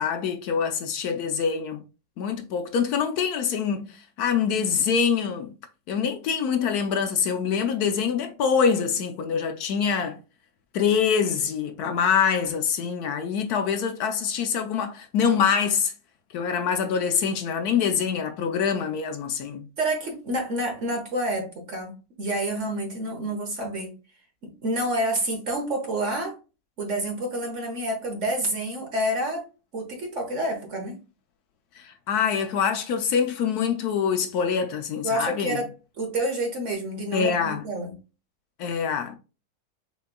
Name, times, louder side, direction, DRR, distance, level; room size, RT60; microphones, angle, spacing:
voice 1, 0.0-1.8 2.2-5.5 5.9-10.2 10.7-15.9 16.3-19.7 31.8-35.6 37.1-37.6 38.6-39.1, left 7 dB, 70° left, 1.1 m, -25 dB
voice 2, 19.8-23.9 24.4-26.4 26.8-29.4 29.7-31.0 35.0-35.7 36.0-37.9, right 1 dB, 50° right, 1.4 m, -28 dB
4.3 x 3.8 x 2.2 m
omnidirectional pair, 1.8 m